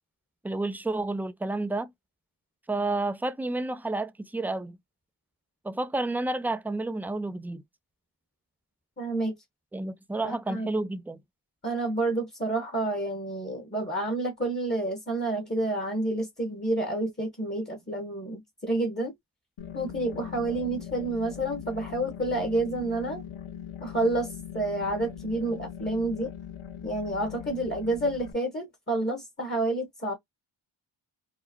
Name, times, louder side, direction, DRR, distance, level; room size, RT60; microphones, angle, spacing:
voice 1, 0.4-1.9 2.7-4.8 5.6-7.6 9.7-11.2, right 2 dB, 5° right, 0.4 m, -30 dB
voice 2, 9.0-9.3 10.2-10.7 11.6-19.1 19.7-23.2 23.8-26.3 26.8-30.1, right 2 dB, 20° left, 1.2 m, -29 dB
sound 1, 19.6-28.3, left 9 dB, 80° left, 0.6 m, -41 dB
4.7 x 2.0 x 2.8 m
cardioid pair, 50°, 49 cm